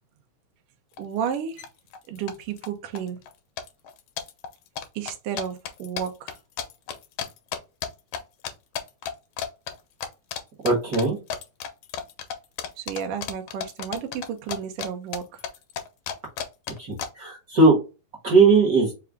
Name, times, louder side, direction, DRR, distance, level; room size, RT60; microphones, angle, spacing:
sound 1, 1.0-1.1 1.3-1.7 1.9-2.7 3.0-3.3 3.6-8.2 8.4-9.1 9.4-9.8 10.0-10.4 10.7-14.9 15.1-17.1, left 8 dB, 80° left, 1.9 m, -33 dB
voice 1, 1.0-1.6 2.1-3.2 4.9-6.4 12.8-15.4, right 8 dB, 70° right, 1.4 m, -32 dB
voice 2, 10.6-11.2 16.9-17.8 18.2-18.9, right 3 dB, 50° right, 1.1 m, -18 dB
4.8 x 2.3 x 3.5 m
omnidirectional pair, 3.5 m